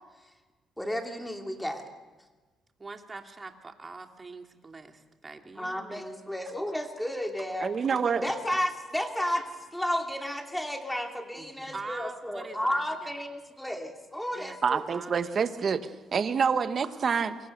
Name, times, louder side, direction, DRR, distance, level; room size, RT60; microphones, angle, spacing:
voice 1, 0.8-1.8 5.6-14.8, equal, 5° left, 3 dB, 2.7 m, -32 dB
voice 2, 2.8-6.0 8.1-8.3 11.3-13.1 14.3-14.6 14.9-15.6, right 3 dB, 30° right, 4 dB, 2.6 m, -44 dB
voice 3, 7.6-8.2 14.6-17.4, right 6 dB, 50° right, 10 dB, 1.4 m, -27 dB
28.5 x 22.5 x 6.8 m, 1.3 s
cardioid pair, 90°, 0 cm